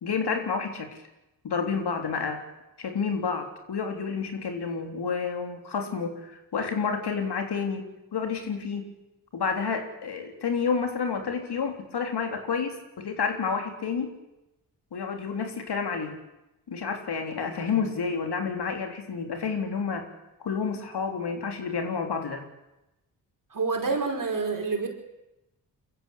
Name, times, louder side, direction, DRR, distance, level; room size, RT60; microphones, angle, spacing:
voice 1, 0.0-1.0 1.4-2.4 2.8-8.9 9.3-14.1 14.9-16.2 16.7-20.1 20.4-22.4, left 5 dB, 65° left, 5 dB, 3.4 m, -30 dB
voice 2, 23.5-24.9, right 4 dB, 50° right, 3 dB, 5.0 m, -27 dB
23.5 x 14.0 x 8.5 m, 0.95 s
supercardioid pair, 50°, 42 cm